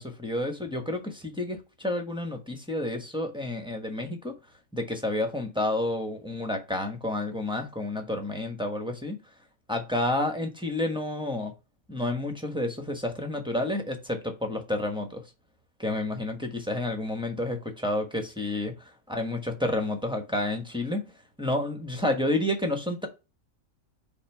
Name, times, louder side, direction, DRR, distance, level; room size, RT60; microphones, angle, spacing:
voice 1, 0.0-4.4 4.7-9.2 9.7-11.5 11.9-15.2 15.8-18.7 19.1-21.1 21.4-23.1, left 1 dB, 5° right, 1.1 m, -30 dB
5.4 x 4.2 x 4.5 m
omnidirectional pair, 1.7 m